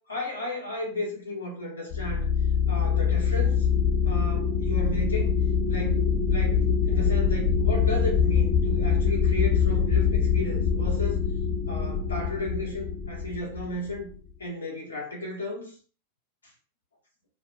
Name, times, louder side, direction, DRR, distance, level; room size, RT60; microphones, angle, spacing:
voice 1, 0.0-2.3 2.7-3.7 4.0-5.3 5.7-11.2 11.7-14.1 14.4-15.8, left 1 dB, 75° left, -2 dB, 0.9 m, -34 dB
sound 1, 1.9-14.2, left 6 dB, 40° left, 0.8 m, -24 dB
2.4 x 2.2 x 2.3 m, 0.41 s
figure-of-eight pair, 90°, 0 cm